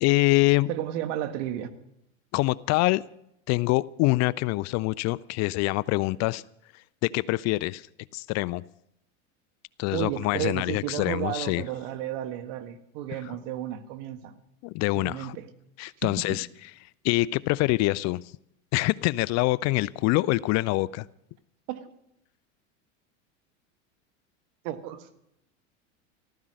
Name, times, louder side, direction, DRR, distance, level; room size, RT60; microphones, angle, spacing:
voice 1, 0.0-0.7 2.3-3.0 3.5-6.4 7.0-7.9 8.1-8.6 9.8-11.6 14.6-15.4 15.8-16.5 17.0-18.2 18.7-21.1, left 20 dB, 45° left, 21 dB, 0.4 m, -25 dB
voice 2, 0.7-1.7 9.9-14.3 14.9-15.4 16.0-16.4 21.7-21.9 24.6-25.1, right 12 dB, 65° right, 9 dB, 1.7 m, -33 dB
14.5 x 13.0 x 6.4 m, 0.81 s
hypercardioid pair, 95°, 39 cm